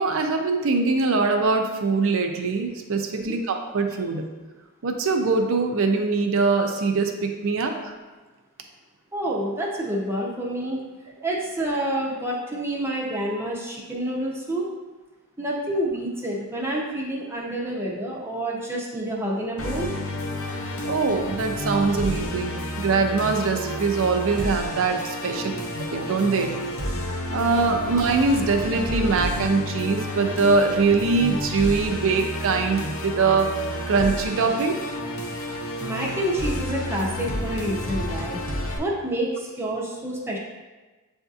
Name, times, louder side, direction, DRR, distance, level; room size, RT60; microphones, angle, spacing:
voice 1, 0.0-4.3 4.8-7.9 20.8-26.5 27.3-33.5 33.9-34.8, right 4 dB, 60° right, 4 dB, 0.5 m, -23 dB
voice 2, 9.1-10.8 11.2-14.7 15.4-19.9 27.7-27.8 35.8-38.4 38.8-40.4, right 1 dB, 10° right, -3 dB, 0.6 m, -28 dB
Musical instrument, 19.6-38.8, left 1 dB, 65° left, 0.7 m, -30 dB
7.9 x 2.7 x 2.4 m, 1.2 s
head